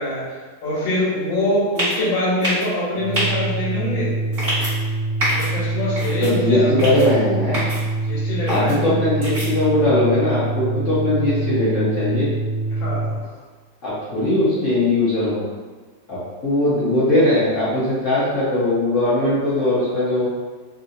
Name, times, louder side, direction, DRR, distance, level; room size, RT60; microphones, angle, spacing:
voice 1, 0.0-4.1 5.3-6.9 8.0-9.0 12.7-13.2, left 1 dB, 80° left, -8 dB, 2.0 m, -24 dB
sound 1, 1.8-2.0 2.4-2.7 3.1-3.3 4.3-4.7 5.2-5.5 6.0-6.3 6.8-7.1 7.5-7.8 8.5-8.7 9.2-9.5, right 1 dB, 30° right, 1.6 m, -24 dB
Organ, 2.9-13.3, right 2 dB, 90° right, 1.6 m, -25 dB
voice 2, 6.2-7.6 8.5-12.3 13.8-15.4 16.1-20.3, left 1 dB, 55° left, -11 dB, 0.9 m, -20 dB
3.9 x 2.7 x 2.6 m, 1.4 s
omnidirectional pair, 2.1 m